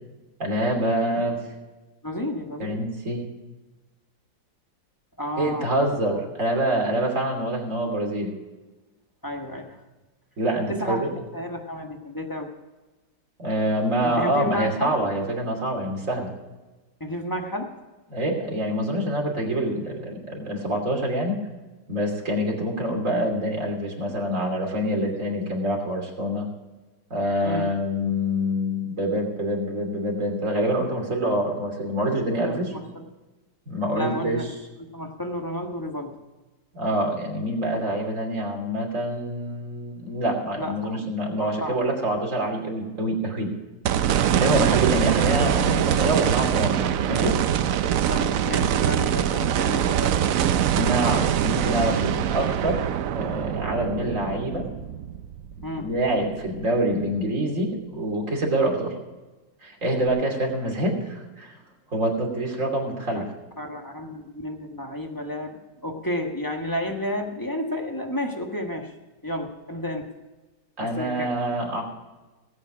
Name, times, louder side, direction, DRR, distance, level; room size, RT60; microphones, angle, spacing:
voice 1, 0.4-1.4 2.6-3.2 5.4-8.3 10.4-11.1 13.4-16.3 18.1-21.4 21.9-26.5 27.1-32.7 33.7-34.4 36.7-43.5 44.4-47.4 50.7-52.8 53.1-54.7 55.7-58.9 59.6-61.6 61.9-63.2 70.8-71.8, right 1 dB, 45° right, 0 dB, 3.2 m, -26 dB
voice 2, 2.0-2.8 5.2-5.7 6.1-6.2 9.2-9.8 10.7-11.0 11.3-12.5 14.0-14.9 17.0-17.7 25.1-25.3 27.4-27.7 32.5-33.0 33.9-34.4 34.8-36.2 40.6-41.1 41.4-41.8 44.0-44.7 48.1-50.4 55.6-55.9 63.1-63.2 63.6-68.9 69.2-70.1 70.8-71.3, left 1 dB, 10° left, 2 dB, 1.3 m, -32 dB
sound 1, 43.8-56.2 56.6-56.7 60.1-60.2, right 9 dB, 70° right, 0.8 m, -23 dB
18.5 x 8.7 x 4.9 m, 1.2 s
omnidirectional pair, 2.0 m